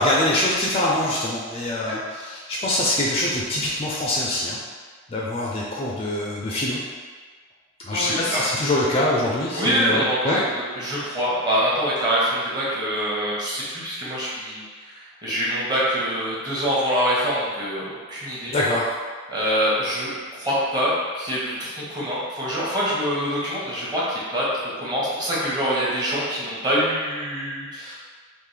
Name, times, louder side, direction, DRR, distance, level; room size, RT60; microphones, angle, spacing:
voice 1, 0.0-4.6 5.1-6.8 7.8-10.4 18.5-18.9, left 1 dB, 30° left, -4 dB, 0.4 m, -24 dB
voice 2, 7.9-8.5 9.5-10.4 10.7-14.6 14.9-18.6 19.3-24.4 24.8-27.9, equal, 20° right, -7 dB, 0.9 m, -25 dB
3.7 x 2.5 x 3.2 m, 1.5 s
head